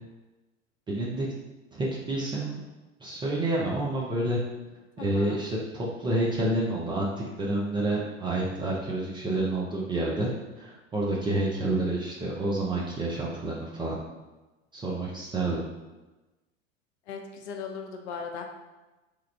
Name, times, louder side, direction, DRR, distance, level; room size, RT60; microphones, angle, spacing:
voice 1, 0.9-1.3 1.7-2.6 3.0-4.4 5.0-7.1 7.4-10.3 10.6-14.0 14.7-15.6, right 2 dB, 15° right, -4 dB, 0.3 m, -29 dB
voice 2, 5.0-5.5 9.2-9.3 17.1-18.5, left 5 dB, 60° left, 3 dB, 0.6 m, -38 dB
3.1 x 2.3 x 3.2 m, 1.1 s
figure-of-eight pair, 85°, 39 cm